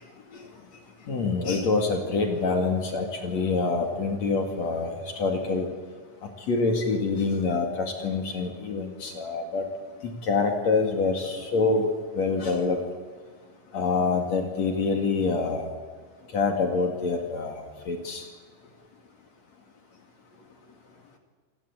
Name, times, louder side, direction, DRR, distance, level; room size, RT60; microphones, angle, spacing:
voice 1, 1.1-4.9 5.2-5.7 6.5-9.6 10.3-11.9 12.2-12.8 13.7-15.7 16.3-18.2, left 4 dB, 55° left, 4 dB, 3.4 m, -26 dB
26.5 x 20.0 x 8.8 m, 1.5 s
omnidirectional pair, 4.0 m